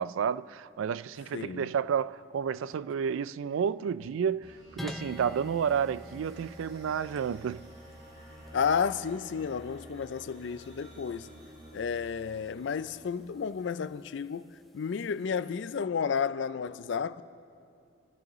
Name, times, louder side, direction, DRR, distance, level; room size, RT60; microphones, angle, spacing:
voice 1, 0.0-7.7, right 7 dB, 80° right, 0.3 m, -31 dB
voice 2, 1.3-1.7 8.5-11.3 11.7-17.2, left 6 dB, 65° left, 0.4 m, -32 dB
sound 1, 4.4-13.8, right 1 dB, 55° right, 4.6 m, -51 dB
sound 2, 4.8-15.3, left 1 dB, ahead, 0.6 m, -50 dB
23.5 x 15.0 x 3.1 m
head